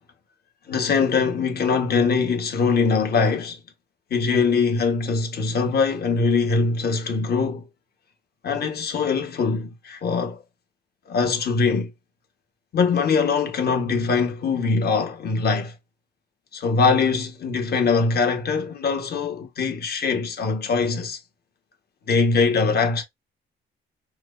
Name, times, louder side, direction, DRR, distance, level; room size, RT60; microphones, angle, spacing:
voice 1, 0.7-3.6 4.1-7.7 8.4-10.4 11.1-11.9 12.7-15.7 16.5-21.2 22.1-23.0, left 4 dB, 55° left, 1.3 m, -22 dB
4.6 x 2.1 x 2.5 m
cardioid pair, 90°, 20 cm